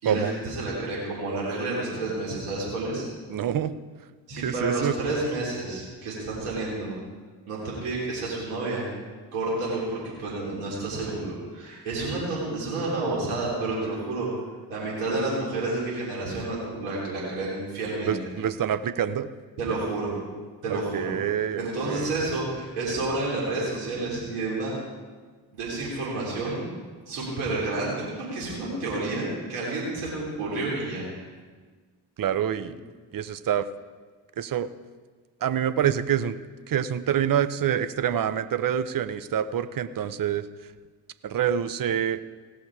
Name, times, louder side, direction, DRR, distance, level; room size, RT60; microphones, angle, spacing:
voice 1, 0.0-3.0 4.3-6.9 7.5-8.9 9.3-14.3 14.7-18.2 19.6-20.1 20.6-21.1 21.6-24.7 25.5-26.7 27.1-31.3 32.6-32.7, right 2 dB, 80° right, -6 dB, 3.6 m, -30 dB
voice 2, 3.3-3.7 4.4-5.0 18.1-19.3 20.7-22.1 32.2-32.8 33.1-33.7 34.4-34.7 35.4-36.4 36.7-40.5 41.2-42.2, right 9 dB, 40° right, 14 dB, 0.8 m, -26 dB
17.5 x 6.2 x 4.8 m, 1.4 s
hypercardioid pair, 50°, 50 cm